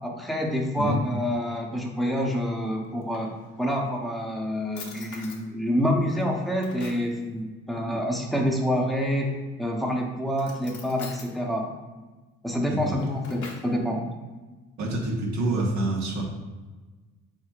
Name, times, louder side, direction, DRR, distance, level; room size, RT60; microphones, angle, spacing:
voice 1, 0.0-3.3 3.6-11.7 12.4-14.0, equal, ahead, 0 dB, 0.8 m, -27 dB
Drawer open or close, 2.8-3.8 4.3-4.4 4.7-5.4 6.0-7.1 9.0-9.6 10.3-11.3 12.7-13.8, left 4 dB, 75° left, 0.9 m, -44 dB
voice 2, 14.8-16.2, right 2 dB, 70° right, -1 dB, 1.3 m, -27 dB
4.9 x 4.0 x 2.4 m, 1.3 s
cardioid pair, 90°, 30 cm